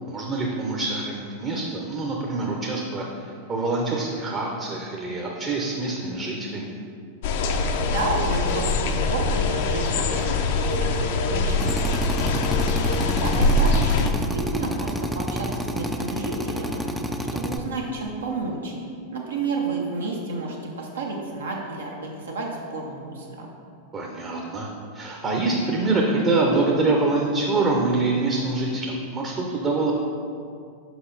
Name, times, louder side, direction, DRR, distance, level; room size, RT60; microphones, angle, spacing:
voice 1, 0.0-6.8 23.9-29.9, right 3 dB, 30° right, -1 dB, 0.8 m, -25 dB
sound 1, 7.2-14.1, left 3 dB, 50° left, 0.5 m, -23 dB
voice 2, 7.8-12.4 13.0-17.0 17.3-18.7 19.1-23.5, right 3 dB, 70° right, -1 dB, 0.8 m, -31 dB
Drill, 11.6-17.6, equal, 5° right, 0.4 m, -29 dB
6.0 x 5.5 x 3.9 m, 2.3 s
figure-of-eight pair, 90°, 0 cm